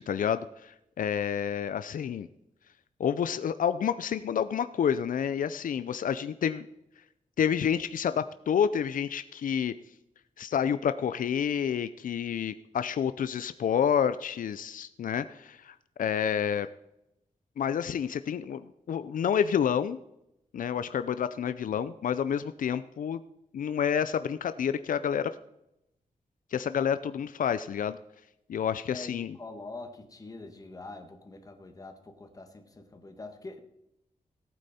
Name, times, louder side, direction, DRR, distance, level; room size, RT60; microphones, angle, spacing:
voice 1, 0.0-2.3 3.0-6.6 7.4-9.7 10.4-16.7 17.6-20.0 20.5-23.2 23.5-25.3 26.5-28.0 28.5-29.4, left 8 dB, 85° left, 13 dB, 0.5 m, -29 dB
voice 2, 28.9-33.6, left 2 dB, 25° left, 6 dB, 1.6 m, -44 dB
18.0 x 9.0 x 4.3 m, 0.84 s
wide cardioid pair, 165°, 14 cm